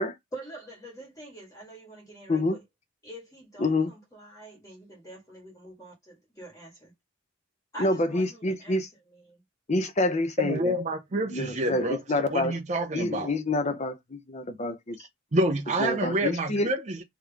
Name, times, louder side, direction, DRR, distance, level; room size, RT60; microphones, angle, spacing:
voice 1, 0.3-2.6 3.0-6.9 7.7-8.8 9.1-9.4, right 1 dB, 15° left, 1.7 m, -45 dB
voice 2, 3.6-3.9 7.8-8.9 9.7-10.7 11.3-12.6 12.9-15.0 15.8-16.7, left 2 dB, 35° left, 0.7 m, -27 dB
voice 3, 10.4-12.0 12.3-13.3 15.3-17.0, right 1 dB, 35° right, 0.6 m, -28 dB
3.6 x 3.0 x 3.5 m
head